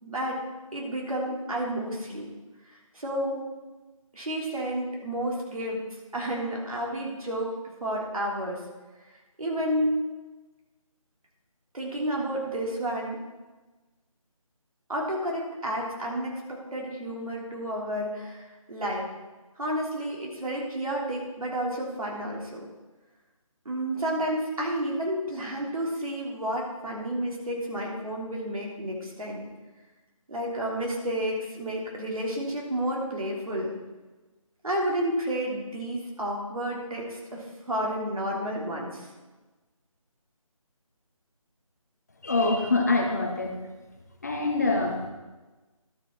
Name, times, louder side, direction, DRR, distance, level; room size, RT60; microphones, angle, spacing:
voice 1, 0.0-0.4 0.7-2.2 2.7-3.5 4.1-5.8 6.1-7.5 7.8-8.6 9.4-10.0 11.7-13.2 14.9-19.1 19.6-22.6 23.6-29.4 30.3-33.7 34.6-39.1, right 1 dB, 85° right, -2 dB, 3.2 m, -31 dB
voice 2, 42.2-43.6 44.2-45.1, left 3 dB, 30° left, 3 dB, 0.9 m, -25 dB
12.0 x 7.0 x 4.4 m, 1.2 s
figure-of-eight pair, 175°, 18 cm